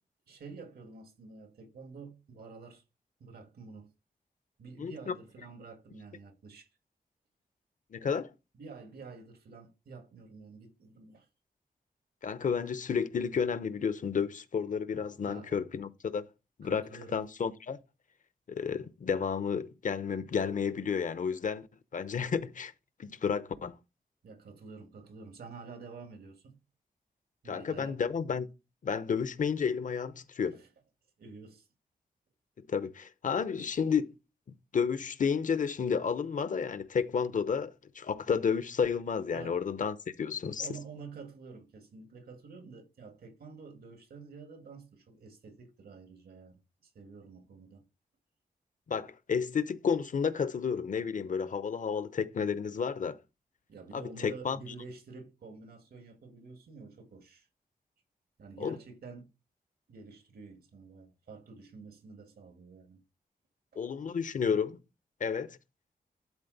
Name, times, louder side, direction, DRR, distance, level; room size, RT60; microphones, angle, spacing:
voice 1, 0.3-2.8 3.2-3.9 4.6-6.7 8.5-11.3 15.2-15.6 16.6-17.2 24.2-26.6 27.4-28.0 30.5-30.7 31.2-31.7 39.3-39.6 40.6-47.9 53.7-57.5 58.4-59.3 59.9-63.0, right 4 dB, 80° right, 2.0 m, -49 dB
voice 2, 4.8-5.1 7.9-8.3 12.2-16.2 16.6-16.8 17.1-17.8 18.5-21.7 21.9-22.7 23.0-23.8 27.5-28.5 28.8-30.6 32.7-34.1 34.7-40.7 48.9-53.2 53.9-54.6 58.6-58.8 63.8-64.8 65.2-65.6, left 6 dB, 55° left, 0.8 m, -31 dB
11.5 x 4.2 x 4.1 m
wide cardioid pair, 115°, 16 cm